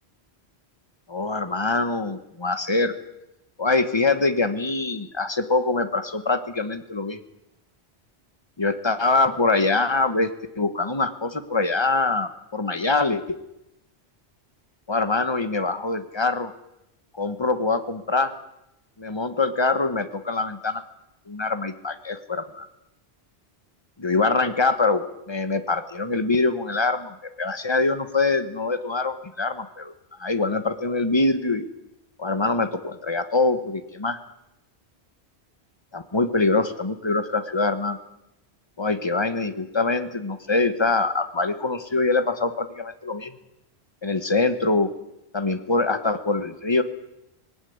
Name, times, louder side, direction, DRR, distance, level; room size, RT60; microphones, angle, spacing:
voice 1, 1.1-2.9 3.6-7.2 8.6-10.3 10.6-13.4 14.9-16.5 17.1-18.3 19.0-20.8 21.3-22.7 24.0-29.9 30.2-31.7 32.2-34.2 35.9-38.0 38.8-43.3 44.0-44.9 45.3-46.8, left 3 dB, 25° left, 10 dB, 1.4 m, -24 dB
19.0 x 18.5 x 9.5 m, 0.90 s
omnidirectional pair, 1.1 m